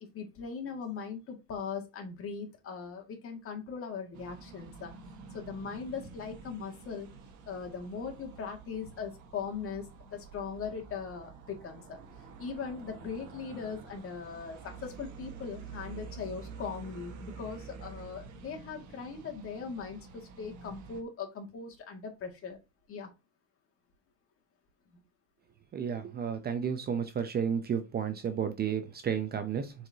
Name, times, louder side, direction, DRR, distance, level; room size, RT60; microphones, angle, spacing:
voice 1, 0.1-4.9 5.3-7.1 7.5-12.0 12.4-22.6 22.9-23.1, left 5 dB, 35° left, 2 dB, 2.3 m, -40 dB
sound 1, 4.1-21.0, right 5 dB, 50° right, 1.7 m, -49 dB
voice 2, 25.7-29.7, right 7 dB, 25° right, 9 dB, 0.8 m, -32 dB
7.3 x 4.8 x 2.9 m, 0.26 s
supercardioid pair, 130°, 37 cm